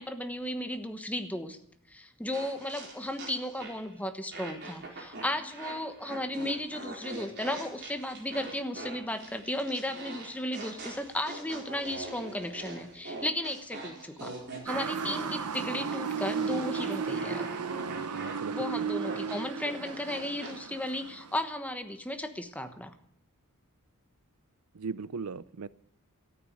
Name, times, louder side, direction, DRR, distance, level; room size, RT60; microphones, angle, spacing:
voice 1, 0.0-1.6 1.9-14.3 14.6-17.5 18.5-22.9, left 1 dB, 5° left, 7 dB, 1.1 m, -35 dB
sound 1, 2.3-3.9 4.3-20.5, right 2 dB, 50° right, 4.4 m, -43 dB
Motor vehicle (road) / Siren, 14.7-21.4, right 6 dB, 90° right, 0.9 m, -34 dB
voice 2, 17.9-18.8 24.7-25.7, right 5 dB, 75° right, 18 dB, 0.5 m, -39 dB
13.5 x 9.4 x 9.3 m, 0.69 s
head